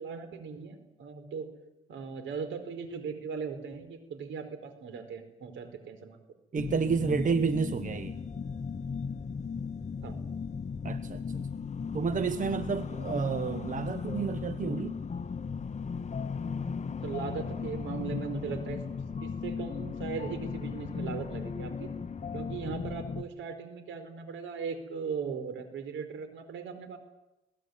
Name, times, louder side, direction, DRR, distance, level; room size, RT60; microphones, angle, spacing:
voice 1, 0.0-1.5 1.9-6.2 10.0-10.2 17.0-18.8 19.2-21.9 22.3-27.0, right 6 dB, 75° right, 10 dB, 4.7 m, -38 dB
voice 2, 6.5-8.2 10.8-11.5 11.9-15.0, right 5 dB, 40° right, 11 dB, 1.2 m, -30 dB
sound 1, 6.6-23.2, left 5 dB, 35° left, 1.2 m, -36 dB
22.0 x 18.5 x 9.6 m, 0.95 s
cardioid pair, 90°, 20 cm